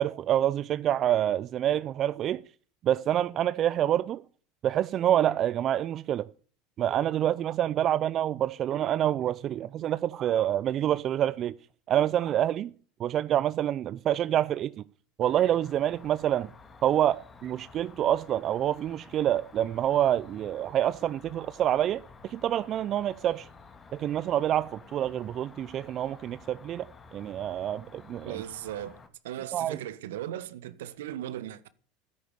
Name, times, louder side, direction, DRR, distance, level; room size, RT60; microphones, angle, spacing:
voice 1, 0.0-2.4 2.8-4.2 4.6-6.3 6.8-11.5 11.9-12.7 13.0-14.7 15.2-16.5 16.8-23.5 23.9-26.8 27.1-28.4 29.5-29.8, right 11 dB, 45° right, 0.5 m, -27 dB
Cricket, 15.2-29.1, left 4 dB, 25° left, 2.5 m, -52 dB
voice 2, 28.2-31.7, right 12 dB, 80° right, 1.3 m, -38 dB
13.0 x 10.0 x 6.7 m
hypercardioid pair, 90°, 0 cm